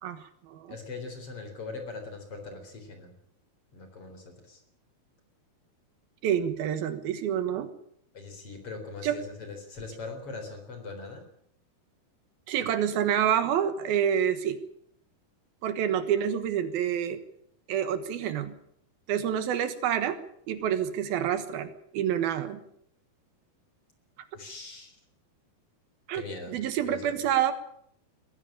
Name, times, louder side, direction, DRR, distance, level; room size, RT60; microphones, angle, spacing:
voice 1, 0.0-0.7 6.2-7.7 9.0-9.2 12.5-14.6 15.6-17.2 17.7-18.5 19.1-20.2 20.5-22.6 26.1-26.2 26.5-27.5, right 9 dB, 75° right, 11 dB, 3.1 m, -28 dB
voice 2, 0.7-3.1 3.7-4.6 8.1-11.2 24.3-24.9 26.1-26.6 26.8-27.2, left 3 dB, 35° left, 6 dB, 4.6 m, -41 dB
21.0 x 15.5 x 8.7 m, 0.69 s
omnidirectional pair, 4.4 m